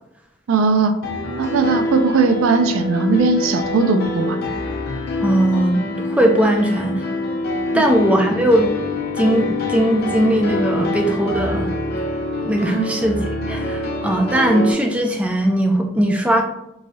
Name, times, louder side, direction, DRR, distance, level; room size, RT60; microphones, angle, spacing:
voice 1, 0.5-0.9 1.4-4.4 7.7-7.8 12.8-12.9, right 4 dB, 85° right, 8 dB, 0.4 m, -18 dB
Piano, 1.0-14.7, left 2 dB, 55° left, 0.5 m, -25 dB
voice 2, 5.2-7.0 7.7-8.7 9.1-11.7 12.4-16.4, right 1 dB, 5° right, 2 dB, 0.3 m, -19 dB
3.1 x 2.6 x 2.6 m, 0.84 s
head